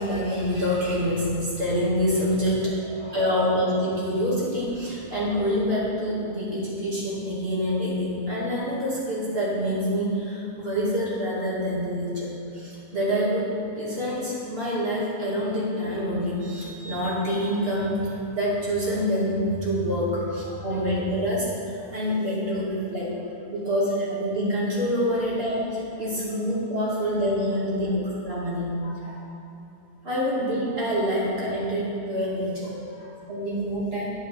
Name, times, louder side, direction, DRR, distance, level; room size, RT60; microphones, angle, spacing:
voice 1, 0.0-2.7 3.1-12.3 12.5-23.1 23.5-28.0 28.2-28.7 30.0-32.7 33.3-34.1, equal, 35° right, -8 dB, 2.5 m, -26 dB
voice 2, 2.6-3.2 20.5-20.8 21.8-22.0 23.5-23.6 26.9-27.0 28.0-28.5 28.8-29.2 31.5-31.6 32.7-33.1, equal, 50° left, -11 dB, 2.2 m, -46 dB
9.1 x 8.5 x 3.6 m, 2.7 s
omnidirectional pair, 1.8 m